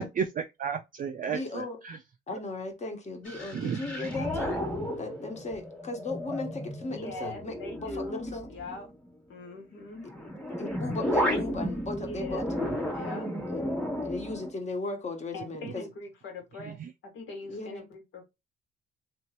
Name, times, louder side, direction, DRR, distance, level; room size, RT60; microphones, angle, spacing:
voice 1, 0.0-2.0 3.5-3.8, right 7 dB, 45° right, 0.4 m, -32 dB
voice 2, 1.2-1.8 2.3-4.6 5.0-8.5 10.0-10.3 10.6-12.4 13.5-13.6 14.0-15.8 17.5-17.9, left 2 dB, 35° left, 1.2 m, -36 dB
sound 1, 3.2-9.1 9.9-14.5, equal, 5° left, 1.4 m, -33 dB
voice 3, 6.9-8.9 9.3-10.1 11.9-12.5 12.9-13.3 15.3-16.8 17.0-18.2, left 2 dB, 75° left, 1.7 m, -41 dB
3.1 x 3.0 x 2.9 m
cardioid pair, 90°, 20 cm